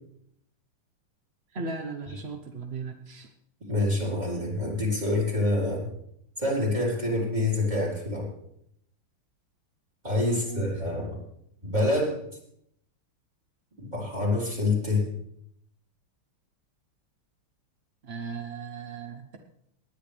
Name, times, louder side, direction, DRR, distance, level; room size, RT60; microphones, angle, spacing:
voice 1, 1.5-3.3 10.3-10.7 18.0-19.4, right 4 dB, 50° right, 5 dB, 0.7 m, -37 dB
voice 2, 3.7-5.8 6.4-8.3 10.0-11.2 11.6-12.2 13.8-15.1, left 2 dB, 20° right, -3 dB, 4.2 m, -26 dB
19.0 x 10.5 x 3.4 m, 0.73 s
omnidirectional pair, 2.4 m